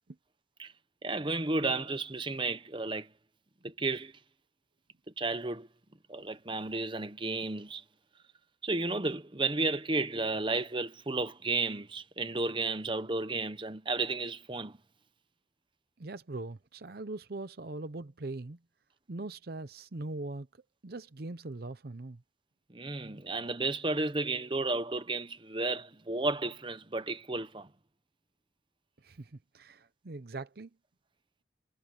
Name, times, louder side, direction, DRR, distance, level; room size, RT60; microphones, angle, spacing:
voice 1, 1.0-3.1 3.6-4.1 5.2-5.7 6.1-7.8 8.6-14.8 22.7-27.7, right 3 dB, 25° right, 1.0 m, -33 dB
voice 2, 16.0-18.6 19.1-20.5 20.8-22.2 29.0-30.7, right 2 dB, 55° right, 0.7 m, -41 dB
head